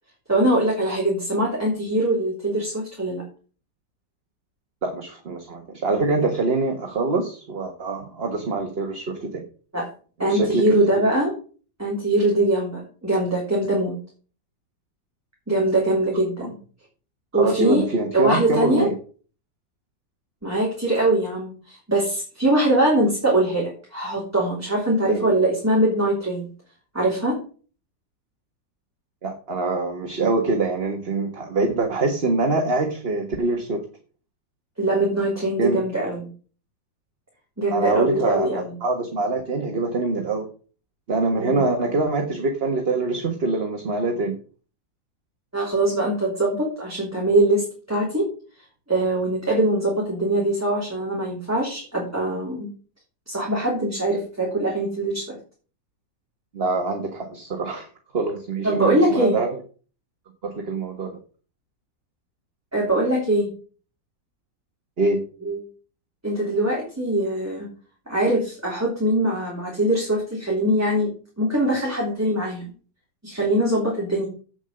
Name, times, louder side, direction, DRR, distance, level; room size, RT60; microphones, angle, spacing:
voice 1, 0.3-3.2 9.7-9.9 10.2-11.3 11.8-13.9 15.5-16.6 17.3-17.9 18.1-18.9 20.4-26.5 26.9-27.4 34.8-36.3 37.6-38.7 41.4-41.7 45.5-48.3 48.9-52.7 53.3-55.3 58.6-59.4 62.7-63.5 65.4-65.6 66.2-67.7 68.1-71.1 71.4-72.6 73.2-74.3, right 1 dB, 10° right, -4 dB, 3.4 m, -22 dB
voice 2, 4.8-9.4 10.2-10.8 16.4-16.5 17.3-18.9 25.1-25.3 29.2-33.8 35.6-35.8 37.7-40.5 41.1-44.4 56.5-57.9 58.1-59.6 60.4-61.2 65.0-65.2, right 3 dB, 35° right, 4 dB, 1.6 m, -24 dB
8.4 x 7.2 x 7.8 m, 0.40 s
omnidirectional pair, 2.0 m